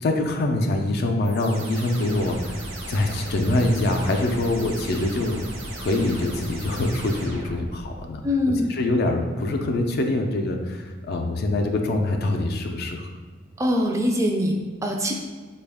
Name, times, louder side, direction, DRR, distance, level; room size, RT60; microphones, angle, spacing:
voice 1, 0.0-5.4 5.8-8.2 8.8-13.1, left 2 dB, 55° left, 4 dB, 0.4 m, -24 dB
sound 1, 1.2-8.1, right 1 dB, 80° right, 0.8 m, -36 dB
voice 2, 8.2-8.7 13.6-15.1, left 1 dB, 15° right, 1 dB, 0.3 m, -23 dB
4.1 x 2.3 x 3.4 m, 1.5 s
head